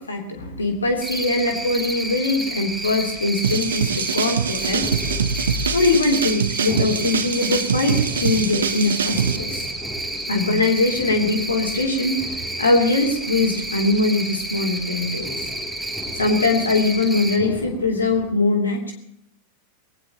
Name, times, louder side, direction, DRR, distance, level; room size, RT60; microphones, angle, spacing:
voice 1, 0.0-4.9 5.7-9.7 10.3-12.3 12.6-15.3 16.1-18.9, left 2 dB, 75° left, 3 dB, 3.3 m, -21 dB
sound 1, 0.6-18.3, left 2 dB, 15° left, 3.1 m, -38 dB
Cricket, 1.0-17.4, right 1 dB, 5° right, 2.4 m, -30 dB
sound 2, 3.4-9.4, right 7 dB, 70° right, 0.8 m, -24 dB
22.0 x 18.5 x 3.0 m, 0.74 s
figure-of-eight pair, 90°, 0 cm